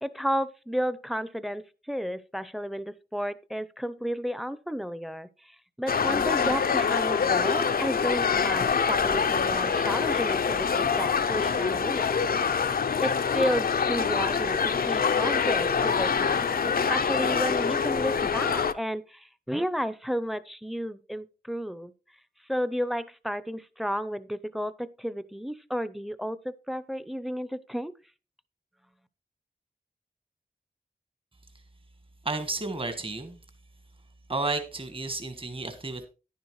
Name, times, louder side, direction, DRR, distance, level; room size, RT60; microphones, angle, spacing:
voice 1, 0.0-12.3 13.0-21.9 22.5-27.9, equal, ahead, 15 dB, 0.6 m, -32 dB
sound 1, 5.9-18.7, left 6 dB, 70° left, 0.5 m, -25 dB
voice 2, 32.2-33.4 34.3-36.1, right 3 dB, 35° right, 8 dB, 1.4 m, -32 dB
10.5 x 10.0 x 3.1 m, 0.32 s
wide cardioid pair, 65°, 16 cm